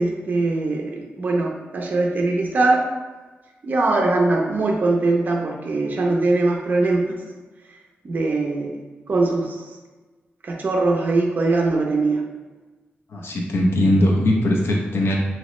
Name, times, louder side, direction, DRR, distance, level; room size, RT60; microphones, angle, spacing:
voice 1, 0.0-2.8 3.6-7.2 8.0-8.7 9.1-9.6 10.4-12.2, right 3 dB, 45° right, -1 dB, 0.4 m, -21 dB
voice 2, 13.1-15.2, left 1 dB, 70° left, -1 dB, 0.7 m, -20 dB
3.0 x 2.9 x 3.0 m, 1.3 s
wide cardioid pair, 160°, 4 cm